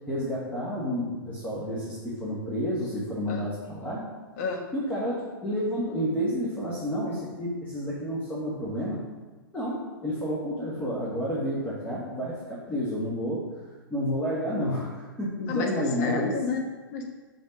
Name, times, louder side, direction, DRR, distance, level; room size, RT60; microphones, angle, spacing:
voice 1, 0.1-4.0 4.7-9.0 9.5-13.4 13.9-16.4, equal, 15° left, -6 dB, 1.6 m, -30 dB
voice 2, 4.4-4.7 15.5-17.0, left 4 dB, 50° left, 2 dB, 1.2 m, -31 dB
5.5 x 5.1 x 6.1 m, 1.3 s
figure-of-eight pair, 110°, 12 cm